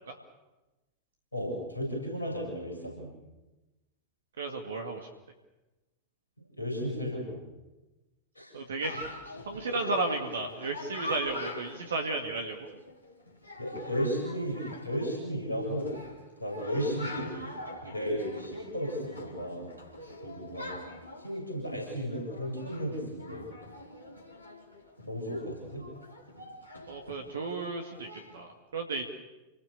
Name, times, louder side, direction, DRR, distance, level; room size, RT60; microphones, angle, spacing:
voice 1, 1.3-3.1 6.6-7.4 8.4-8.5 13.6-15.9 16.4-17.5 17.8-19.7 20.2-20.8 21.2-23.5 25.0-25.8, equal, 80° left, 0 dB, 7.5 m, -34 dB
voice 2, 4.4-5.1 8.5-9.1 9.5-12.7 26.9-29.0, right 3 dB, 65° right, 3 dB, 2.2 m, -34 dB
Chatter, 8.8-28.4, left 2 dB, 90° right, 3.8 m, -45 dB
28.5 x 20.5 x 7.0 m, 1.1 s
figure-of-eight pair, 90°, 0 cm